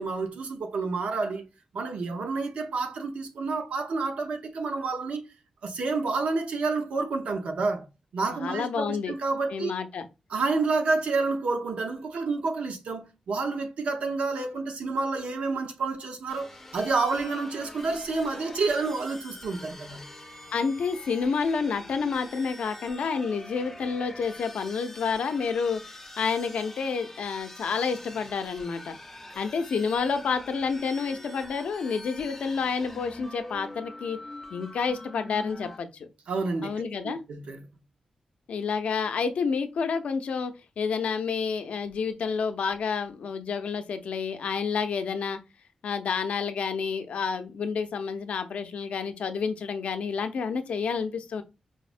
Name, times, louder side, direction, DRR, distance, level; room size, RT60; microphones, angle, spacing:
voice 1, 0.0-1.5 1.7-5.2 5.6-7.9 8.1-9.7 10.3-20.0 36.3-36.7 37.0-37.6, right 3 dB, 85° right, 0.6 m, -29 dB
voice 2, 8.3-9.1 9.5-10.1 20.5-29.0 29.4-34.2 34.5-36.1 36.6-37.2 38.5-45.4 45.8-51.4, left 5 dB, 80° left, 0.5 m, -29 dB
sound 1, 16.3-35.8, left 2 dB, 15° left, 0.4 m, -45 dB
4.8 x 2.1 x 2.4 m
wide cardioid pair, 165°, 2 cm